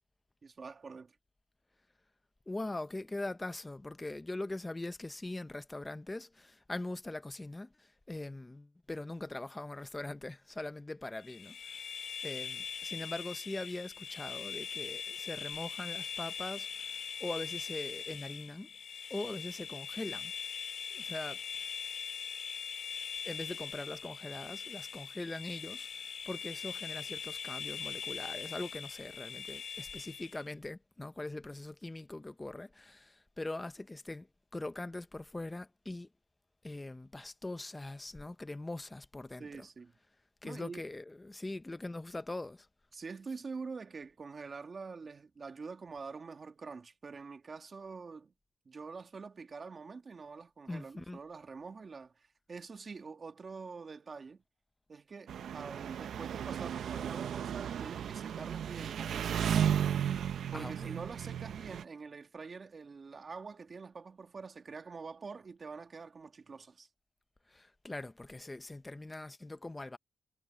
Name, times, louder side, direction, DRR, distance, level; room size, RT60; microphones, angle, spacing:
voice 1, 0.4-1.1 39.4-39.9 40.4-40.8 42.9-48.3 48.7-54.4 54.9-59.9 60.5-66.9, right 4 dB, 40° right, 2.1 m, -46 dB
voice 2, 2.5-11.8 12.2-18.7 19.1-20.3 20.9-21.4 23.2-34.3 34.5-36.1 36.6-39.7 40.4-42.7 50.7-51.2 60.5-60.9 67.5-70.0, left 2 dB, 15° left, 0.8 m, -42 dB
sound 1, 11.2-30.5, left 7 dB, 60° left, 2.2 m, -42 dB
Engine, 55.3-61.8, right 9 dB, 90° right, 0.6 m, -34 dB
wide cardioid pair, 145°, 0 cm